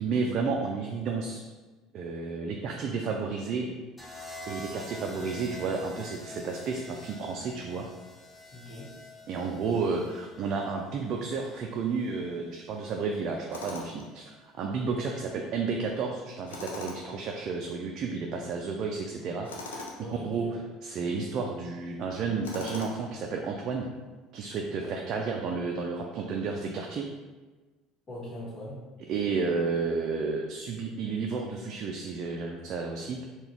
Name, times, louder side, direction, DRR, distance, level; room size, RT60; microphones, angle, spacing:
voice 1, 0.0-1.4 1.9-3.7 4.4-7.9 9.3-19.9 20.2-20.5 20.8-23.9 24.3-27.1 29.1-33.3, right 4 dB, 55° right, 1 dB, 0.3 m, -32 dB
sound 1, 4.0-12.1 13.3-13.7, left 1 dB, 10° left, 0.8 m, -46 dB
voice 2, 8.5-8.9 14.8-15.1 20.0-20.5 24.8-24.9 28.1-28.8, left 1 dB, 40° left, -10 dB, 1.2 m, -41 dB
Tools, 13.5-14.1 16.5-17.2 19.4-20.0 22.4-23.1, left 2 dB, 85° left, 0.4 m, -40 dB
3.8 x 2.2 x 3.0 m, 1.3 s
hypercardioid pair, 70°, 0 cm